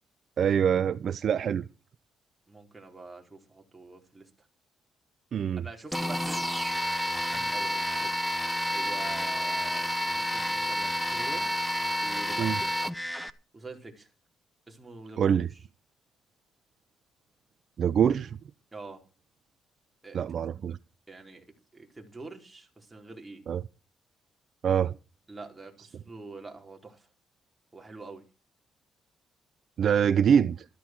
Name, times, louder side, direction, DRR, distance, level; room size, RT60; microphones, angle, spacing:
voice 1, 0.4-1.6 5.3-5.6 12.4-12.6 15.2-15.5 17.8-18.4 20.1-20.8 23.5-23.6 24.6-24.9 29.8-30.6, right 8 dB, 60° right, 0.6 m, -24 dB
voice 2, 2.5-4.5 5.6-6.6 7.1-8.1 8.7-11.6 12.0-12.9 13.5-14.1 14.7-15.4 18.7-19.0 20.0-20.2 21.1-21.4 21.7-23.4 25.3-27.1 27.7-28.2, right 3 dB, 15° right, 4.4 m, -45 dB
sound 1, 5.9-13.3, equal, 5° left, 1.2 m, -30 dB
13.5 x 13.0 x 4.7 m
cardioid pair, 90°, 0 cm